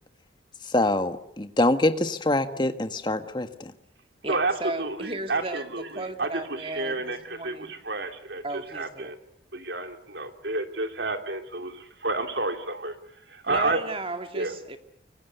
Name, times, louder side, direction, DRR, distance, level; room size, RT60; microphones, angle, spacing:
voice 1, 0.6-3.7, left 2 dB, 25° left, 8 dB, 1.5 m, -25 dB
voice 2, 4.2-7.7 8.4-9.1 13.5-14.8, right 2 dB, 30° right, 7 dB, 2.3 m, -35 dB
voice 3, 4.8-9.2 9.5-13.0 13.3-13.8 14.3-14.5, right 2 dB, 65° right, 6 dB, 3.1 m, -30 dB
25.0 x 24.0 x 8.1 m, 0.69 s
head